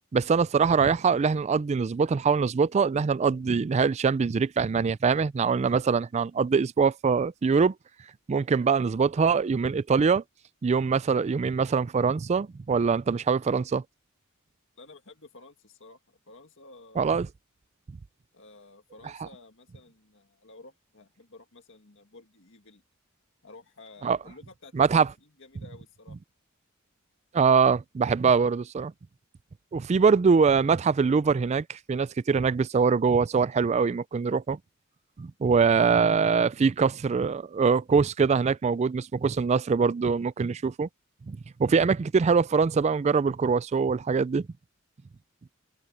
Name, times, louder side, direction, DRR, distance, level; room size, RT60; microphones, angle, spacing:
voice 1, 0.1-7.7 8.3-10.2 10.6-13.8 17.0-17.3 24.0-24.2 24.7-25.1 27.3-28.9 29.7-34.6 35.2-40.9 41.3-44.5, right 5 dB, 30° right, 0.3 m, -23 dB
voice 2, 14.8-17.3 18.3-22.8 23.4-26.2, left 3 dB, 65° left, 1.9 m, -52 dB
head